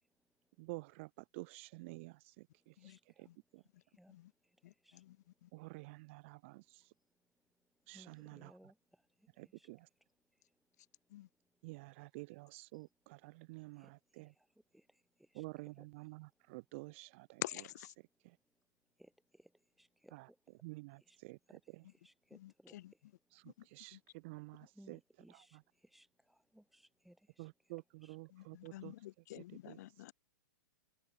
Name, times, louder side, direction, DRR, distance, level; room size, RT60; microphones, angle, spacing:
voice 1, 0.6-3.3 3.5-3.6 5.5-6.9 7.9-8.5 9.4-9.9 11.6-14.3 15.3-17.4 18.2-18.4 20.1-20.3 20.6-21.4 23.3-25.0 25.3-25.6 27.4-28.9 29.3-30.0, right 25 dB, 35° right, 0.3 m, -51 dB
voice 2, 4.6-5.2 5.4-5.5 11.1-11.3 17.4-17.9 22.4-22.9 23.5-23.7 23.9-24.0 28.3-30.1, left 15 dB, 55° left, 1.0 m, -48 dB
voice 3, 7.9-8.7 9.4-9.7 13.8-13.9 14.7-14.8 15.3-15.9 19.0-19.5 19.8-20.4 21.1-21.2 21.5-21.6 22.0-22.7 24.7-25.6 25.9-27.5 28.0-28.2, right 1 dB, ahead, 2.5 m, -63 dB
hypercardioid pair, 145°, 11 cm